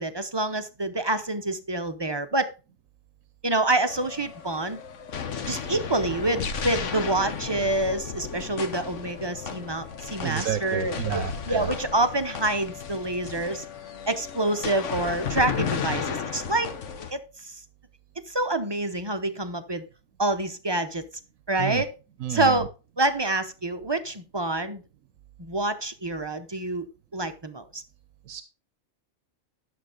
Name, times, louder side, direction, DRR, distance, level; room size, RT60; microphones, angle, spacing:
voice 1, 0.0-2.5 3.4-4.8 5.5-13.6 14.1-16.7 17.1-17.6 18.3-19.8 20.2-21.0 21.5-21.9 22.3-22.7 23.0-24.8 25.4-26.9 27.1-27.8, right 2 dB, 25° right, 0.6 m, -27 dB
sound 1, 3.9-17.1, left 6 dB, 65° left, 1.3 m, -34 dB
voice 2, 10.2-11.7 21.6-21.8 22.2-22.7 28.3-28.4, right 10 dB, 90° right, 1.2 m, -30 dB
11.0 x 7.0 x 3.8 m
omnidirectional pair, 1.3 m